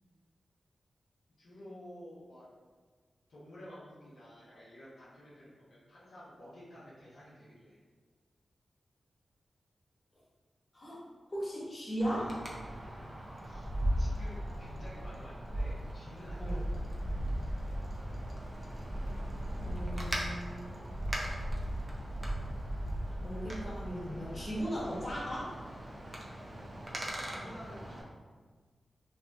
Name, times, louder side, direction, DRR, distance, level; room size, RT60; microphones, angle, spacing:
voice 1, 1.4-2.5 3.3-7.8 13.4-13.7 14.0-16.6 26.8-28.1, equal, 85° left, -9 dB, 0.8 m, -51 dB
voice 2, 11.3-12.4 16.4-16.6 19.6-20.7 23.2-25.5, equal, 40° left, -7 dB, 1.0 m, -37 dB
Wind, 12.0-28.0, equal, 35° right, 0.6 m, -37 dB
2.9 x 2.5 x 2.2 m, 1.5 s
cardioid pair, 50°, 0 cm